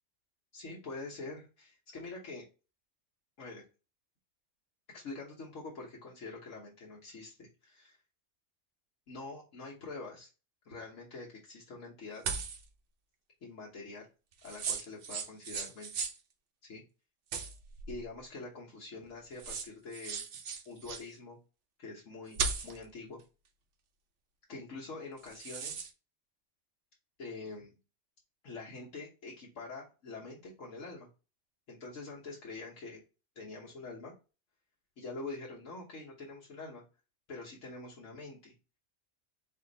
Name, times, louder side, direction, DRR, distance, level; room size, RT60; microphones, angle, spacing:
voice 1, 0.5-2.5 3.4-3.6 4.9-8.0 9.1-10.3 10.6-12.2 13.4-14.1 14.4-15.9 16.6-16.8 17.9-20.2 20.6-21.4 21.8-23.2 24.5-25.9 27.2-27.7 28.4-31.1 31.7-33.0 33.3-34.1 35.0-36.8 37.3-38.5, left 3 dB, 85° left, -5 dB, 1.4 m, -45 dB
sound 1, 12.2-12.6 14.4-16.2 17.3-18.0 19.0-19.1 19.4-21.1 22.3-22.8 25.2-25.9, right 5 dB, 70° right, 1.0 m, -37 dB
4.3 x 2.7 x 3.8 m, 0.32 s
omnidirectional pair, 1.3 m